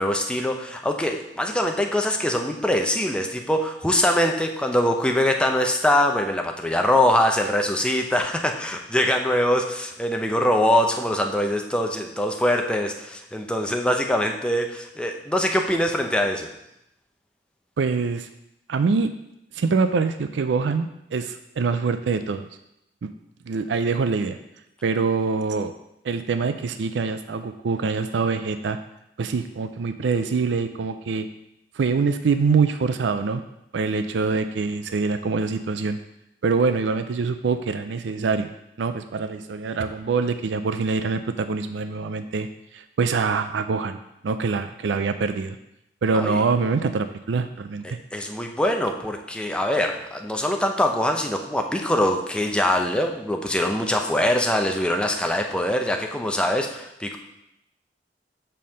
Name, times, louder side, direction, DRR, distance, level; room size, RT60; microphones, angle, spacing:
voice 1, 0.0-16.5 46.1-46.5 47.8-57.2, left 1 dB, 5° left, 3 dB, 0.6 m, -23 dB
voice 2, 17.8-18.3 18.7-19.1 19.5-22.5 23.0-23.1 23.5-24.4 24.8-25.7 26.0-28.8 29.2-31.3 31.8-33.4 33.7-36.0 36.4-38.5 38.8-42.5 42.7-44.0 44.2-45.6 46.0-47.8, right 4 dB, 80° right, 9 dB, 0.4 m, -24 dB
5.5 x 4.5 x 6.3 m, 0.82 s
head